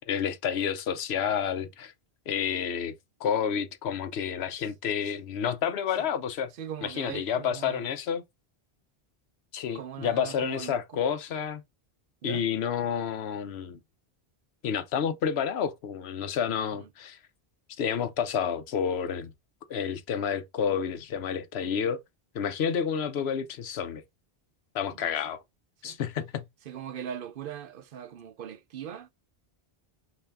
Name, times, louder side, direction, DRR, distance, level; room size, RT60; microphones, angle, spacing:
voice 1, 0.1-1.9 2.3-2.9 3.2-6.5 6.8-8.2 9.5-11.6 12.2-13.8 14.6-17.2 17.8-19.3 19.7-22.0 22.3-24.0 24.7-25.4 25.8-26.4, left 7 dB, 85° left, 0.9 m, -30 dB
voice 2, 6.6-7.9 9.7-11.0 12.2-12.4 16.7-16.9 25.0-25.3 25.8-26.0 26.7-29.1, right 9 dB, 65° right, 0.7 m, -40 dB
5.5 x 2.7 x 3.5 m
omnidirectional pair, 1.0 m